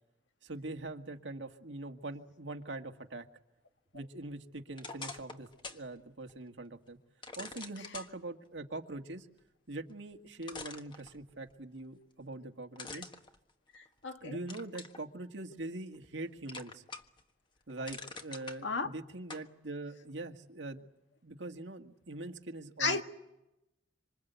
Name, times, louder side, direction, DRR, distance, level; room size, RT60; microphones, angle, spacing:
voice 1, 0.4-3.3 3.9-7.0 7.4-9.3 9.7-13.1 14.2-16.8 17.7-20.9 21.2-23.0, right 2 dB, 85° right, 1.9 m, -43 dB
sound 1, 4.7-5.9 6.3-6.4 7.2-8.1 9.9-10.0 10.4-11.5 12.8-14.0 14.5-15.0 15.5-16.2 16.5-17.2 17.6-18.6 19.3-19.5, left 3 dB, 25° left, 1.4 m, -45 dB
voice 2, 13.7-14.4 18.6-18.9 22.8-23.0, left 4 dB, 90° left, 2.0 m, -33 dB
26.0 x 26.0 x 8.2 m
head